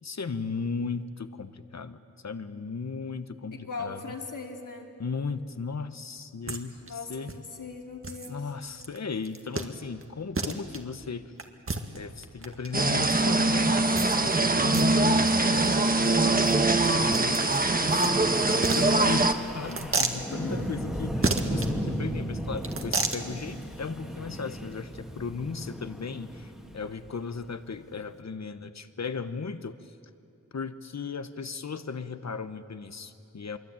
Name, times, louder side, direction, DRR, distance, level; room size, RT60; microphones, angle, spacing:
voice 1, 0.0-4.0 5.0-7.3 8.3-11.3 11.9-29.9 30.5-33.6, left 5 dB, 55° left, 11 dB, 1.2 m, -36 dB
voice 2, 3.5-4.9 6.8-8.4 20.3-20.7, left 4 dB, 80° left, 2 dB, 2.9 m, -39 dB
sound 1, 6.5-6.6 6.9-7.0 7.3-7.4 8.0-8.3 8.8-9.0 9.2-9.7 10.0-10.1 10.3-10.8 11.4-12.7 13.9-14.4 14.6-14.9 15.2-15.3 15.5-15.7 16.0-16.1 16.4-18.1 18.5-19.3 19.7-20.2 21.2-21.7 22.6-23.2, right 3 dB, 45° right, 1.9 m, -31 dB
sound 2, 12.7-19.3, right 2 dB, 30° right, 1.3 m, -23 dB
Wind, 17.2-27.4, equal, ahead, 2.1 m, -36 dB
26.5 x 23.0 x 9.0 m, 2.6 s
wide cardioid pair, 105°, 31 cm